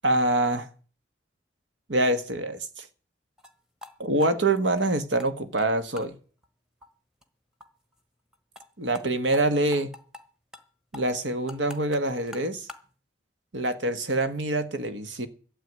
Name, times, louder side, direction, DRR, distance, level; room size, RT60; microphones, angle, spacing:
voice 1, 0.0-0.7 1.9-2.9 4.0-6.2 8.8-9.9 10.9-12.7 13.5-15.3, right 2 dB, 75° right, 1.5 m, -25 dB
sound 1, 3.4-3.5 3.8-3.9 4.2-5.3 5.6-5.7 6.0-6.1 6.4-6.5 6.8-6.9 7.2-7.3 7.6-7.7 7.9-8.0 8.3-8.7 8.9-9.0 9.3-9.4 9.7-10.2 10.5-10.7 10.9-12.9, left 3 dB, 5° right, 1.2 m, -44 dB
13.0 x 6.9 x 9.4 m
head